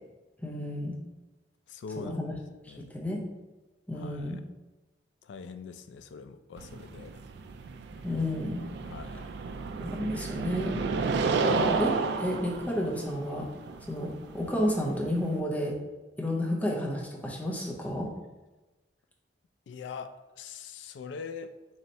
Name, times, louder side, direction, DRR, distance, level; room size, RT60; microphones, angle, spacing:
voice 1, 0.4-1.0 2.0-2.3 2.6-3.3 3.9-4.4 8.0-8.6 9.8-10.8 11.5-11.9 12.2-13.5 13.9-15.8 16.2-18.1, left 1 dB, 10° left, -2 dB, 0.6 m, -31 dB
voice 2, 1.7-2.2 2.6-2.9 3.9-4.3 5.2-7.2 8.8-9.3 19.7-21.5, left 5 dB, 80° left, 10 dB, 0.3 m, -42 dB
sound 1, 6.6-15.4, right 4 dB, 65° right, 0.3 m, -32 dB
3.2 x 2.7 x 4.0 m, 1.1 s
head